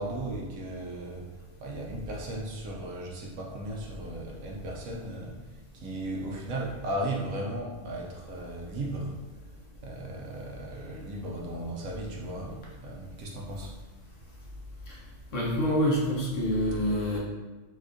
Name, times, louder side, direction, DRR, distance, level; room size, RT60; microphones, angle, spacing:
voice 1, 0.0-1.3 1.6-5.4 5.7-9.1 9.8-13.7, right 1 dB, 70° right, -1 dB, 0.9 m, -36 dB
voice 2, 15.3-17.2, equal, 65° left, -4 dB, 1.0 m, -26 dB
4.1 x 2.4 x 2.5 m, 1.2 s
omnidirectional pair, 1.5 m